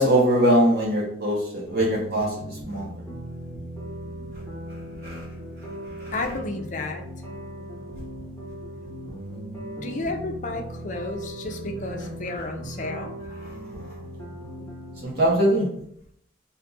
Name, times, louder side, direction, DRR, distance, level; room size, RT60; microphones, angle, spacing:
voice 1, 0.0-3.0 5.0-5.2 6.0-6.1 13.4-13.5 15.0-15.7, equal, 55° right, -4 dB, 0.9 m, -22 dB
sound 1, 1.7-15.0, right 1 dB, 10° left, 0.9 m, -38 dB
voice 2, 6.1-7.0 9.8-13.1, left 2 dB, 40° left, 4 dB, 0.5 m, -32 dB
2.7 x 2.3 x 3.8 m, 0.69 s
head